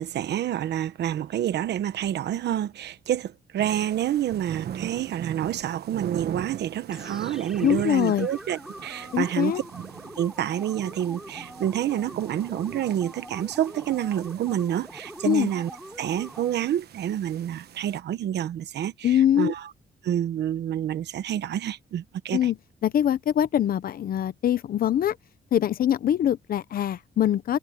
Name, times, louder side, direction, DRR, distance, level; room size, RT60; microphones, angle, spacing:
voice 1, 0.0-9.6 10.2-15.7 16.0-19.7 20.0-22.5, right 11 dB, 85° right, 1.0 m, -28 dB
sound 1, 3.6-18.0, right 10 dB, 70° right, 1.4 m, -41 dB
sound 2, 6.9-16.8, equal, 5° right, 4.6 m, -44 dB
voice 2, 7.6-8.3 9.1-9.6 15.2-15.5 19.0-19.5 22.3-22.6 22.8-25.2 25.5-27.6, left 10 dB, 60° left, 0.8 m, -23 dB
wide cardioid pair, 165°, 17 cm